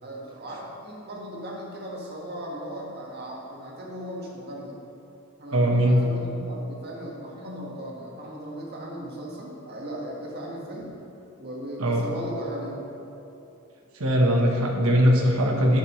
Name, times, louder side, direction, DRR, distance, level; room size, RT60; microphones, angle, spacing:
voice 1, 0.0-4.8 5.4-11.0 11.4-12.8, right 1 dB, 50° right, -3 dB, 1.6 m, -37 dB
voice 2, 5.5-6.1 11.8-12.0 13.9-15.8, equal, 90° right, 1 dB, 1.2 m, -20 dB
11.0 x 7.2 x 3.2 m, 2.8 s
head